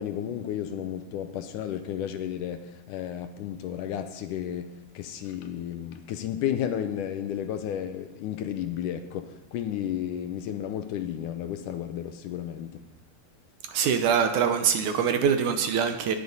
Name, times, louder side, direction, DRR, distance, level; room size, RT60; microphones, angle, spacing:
voice 1, 0.0-12.8, left 10 dB, 75° left, 2.1 m, -33 dB
voice 2, 13.7-16.2, right 7 dB, 75° right, 2.1 m, -24 dB
19.5 x 6.8 x 5.5 m
omnidirectional pair, 3.9 m